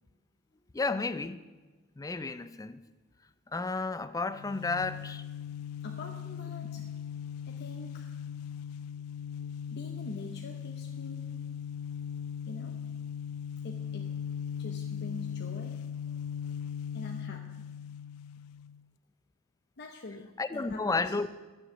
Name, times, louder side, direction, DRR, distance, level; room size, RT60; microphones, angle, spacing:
voice 1, 0.7-1.4 2.0-2.8 3.5-5.2 6.8-6.9 20.4-21.3, left 3 dB, 15° left, 13 dB, 0.4 m, -32 dB
sound 1, 4.3-18.8, left 8 dB, 85° left, 0.3 m, -39 dB
voice 2, 5.8-6.8 7.5-8.1 9.7-11.3 12.5-12.8 13.6-14.1 14.6-16.5 16.9-17.6 19.8-21.1, left 2 dB, 50° left, 2 dB, 0.8 m, -45 dB
11.5 x 7.0 x 6.9 m, 1.2 s
head